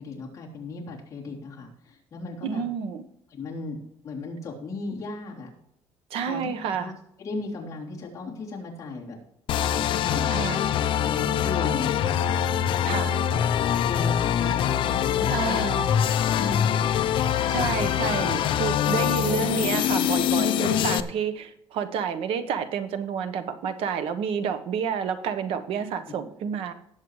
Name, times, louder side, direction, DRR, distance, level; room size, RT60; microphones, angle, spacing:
voice 1, 0.0-2.6 3.3-3.8 4.0-5.5 6.2-6.5 6.8-6.9 7.2-9.2 10.0-10.3 11.0-12.1 12.8-13.5 13.8-15.6 16.3-16.8 18.8-19.0, left 3 dB, 30° left, -3 dB, 3.1 m, -36 dB
voice 2, 2.4-3.0 6.1-6.9 10.3-10.7 12.8-13.1 15.3-15.9 17.5-26.7, right 7 dB, 65° right, 9 dB, 1.1 m, -29 dB
sound 1, 9.5-21.0, left 10 dB, 50° left, 0.7 m, -24 dB
18.5 x 7.6 x 3.2 m, 0.77 s
cardioid pair, 165°, 11 cm